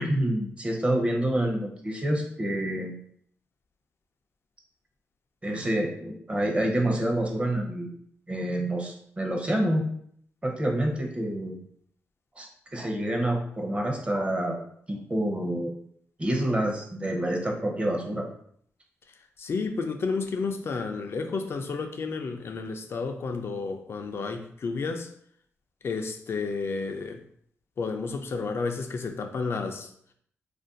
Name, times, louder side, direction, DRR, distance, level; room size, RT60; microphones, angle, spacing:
voice 1, 0.0-2.9 5.4-7.9 8.3-9.8 10.4-11.6 12.4-14.6 14.9-15.8 16.2-18.3, right 1 dB, 25° right, 1 dB, 0.7 m, -27 dB
voice 2, 19.4-25.1 25.8-27.2 27.8-29.9, left 4 dB, 60° left, 5 dB, 0.4 m, -31 dB
2.5 x 2.2 x 3.8 m, 0.65 s
cardioid pair, 80°, 5 cm